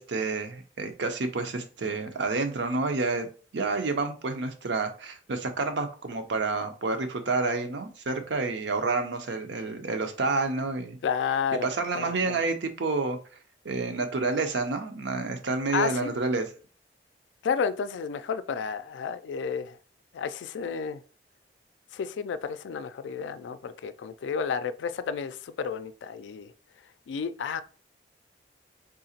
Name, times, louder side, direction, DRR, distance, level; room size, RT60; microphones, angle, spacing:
voice 1, 0.0-3.3 3.5-11.0 11.6-13.2 13.6-16.5, right 3 dB, 80° right, 0.6 m, -29 dB
voice 2, 11.0-11.7 11.9-12.4 15.7-16.1 17.4-19.8 20.1-21.0 21.9-26.5 27.1-27.6, left 6 dB, 90° left, 0.3 m, -31 dB
3.8 x 2.8 x 2.8 m
head